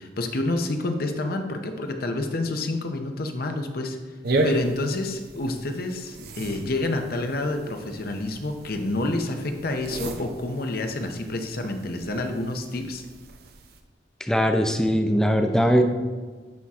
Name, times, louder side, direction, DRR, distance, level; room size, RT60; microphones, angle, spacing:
voice 1, 0.0-4.0 4.4-13.0, left 2 dB, 55° left, 5 dB, 0.8 m, -28 dB
sound 1, 4.2-13.8, right 2 dB, 55° right, 0.7 m, -34 dB
voice 2, 14.2-15.8, equal, 5° left, 5 dB, 0.5 m, -20 dB
10.5 x 3.6 x 4.3 m, 1.4 s
head